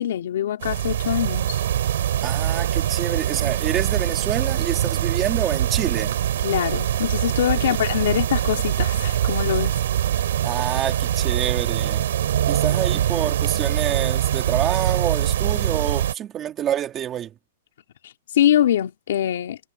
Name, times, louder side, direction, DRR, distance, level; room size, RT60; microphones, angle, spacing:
voice 1, 0.0-1.6 6.4-9.8 18.0-19.6, left 11 dB, 65° left, 2.9 m, -23 dB
sound 1, 0.6-16.1, right 11 dB, 65° right, 5.2 m, -23 dB
voice 2, 2.2-6.2 7.6-7.8 10.4-12.0 12.5-17.3, right 10 dB, 20° right, 2.9 m, -27 dB
hypercardioid pair, 165°, 0 cm